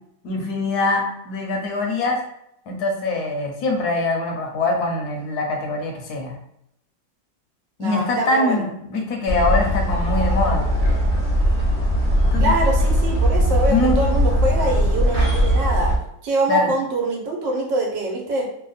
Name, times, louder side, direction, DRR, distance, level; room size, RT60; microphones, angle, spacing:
voice 1, 0.2-2.2 2.7-6.3 7.8-10.7 12.3-12.5 13.7-14.0 16.5-16.7, left 2 dB, 70° left, 1 dB, 1.1 m, -23 dB
voice 2, 7.8-8.6 12.4-15.9 16.2-18.5, right 2 dB, 85° right, 1 dB, 1.5 m, -24 dB
sound 1, 9.3-16.0, equal, 35° right, 1.0 m, -19 dB
3.4 x 2.2 x 3.9 m, 0.78 s
omnidirectional pair, 1.9 m